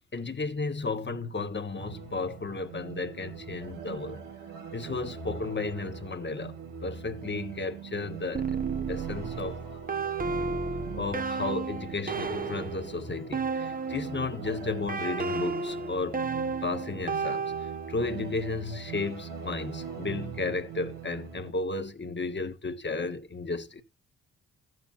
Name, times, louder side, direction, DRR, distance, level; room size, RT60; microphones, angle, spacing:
voice 1, 0.1-4.2 4.7-6.6 6.8-8.4 8.9-9.6 10.9-16.2 16.6-17.5 17.9-23.8, left 3 dB, 35° left, 1.6 m, -33 dB
sound 1, 1.8-21.5, right 7 dB, 85° right, 1.9 m, -41 dB
sound 2, 8.3-14.3 14.9-18.1, right 4 dB, 25° right, 0.9 m, -33 dB
14.5 x 9.4 x 3.0 m
supercardioid pair, 50°, 32 cm